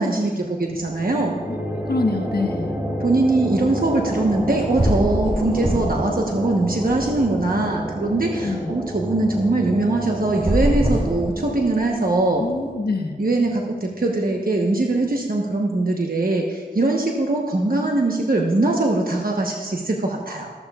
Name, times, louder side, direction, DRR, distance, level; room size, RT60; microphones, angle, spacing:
voice 1, 0.0-1.4 3.0-12.4 13.2-20.5, right 2 dB, 60° right, 0 dB, 1.1 m, -21 dB
sound 1, 0.7-14.1, equal, 10° right, 2.0 m, -30 dB
voice 2, 1.5-2.7 8.4-8.7 12.4-13.1, left 3 dB, 70° left, 3 dB, 1.2 m, -25 dB
sound 2, 4.3-4.5 4.8-6.1 6.4-7.5 10.3-11.8, right 1 dB, 40° right, 2.7 m, -23 dB
14.0 x 14.0 x 2.4 m, 1.4 s
wide cardioid pair, 55°, 17 cm